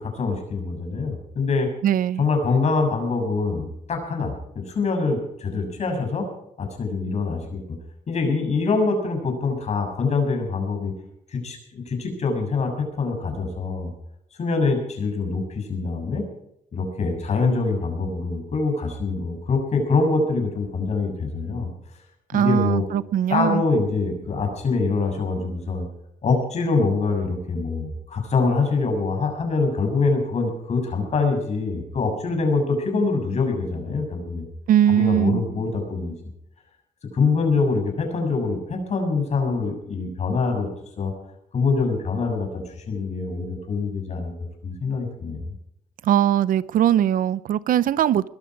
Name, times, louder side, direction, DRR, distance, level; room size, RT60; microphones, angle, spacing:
voice 1, 0.0-1.7 2.2-6.3 6.6-7.6 8.1-10.9 11.3-13.9 14.4-16.3 16.7-21.7 22.3-22.8 23.3-25.9 26.2-34.4 34.9-36.2 37.1-40.7 41.0-41.1 41.5-45.4, left 4 dB, 50° left, 4 dB, 6.8 m, -24 dB
voice 2, 1.8-2.2 22.3-23.6 34.7-35.4 46.0-48.3, right 10 dB, 75° right, 17 dB, 0.7 m, -20 dB
21.5 x 13.5 x 4.7 m, 0.77 s
cardioid pair, 120°, 14 cm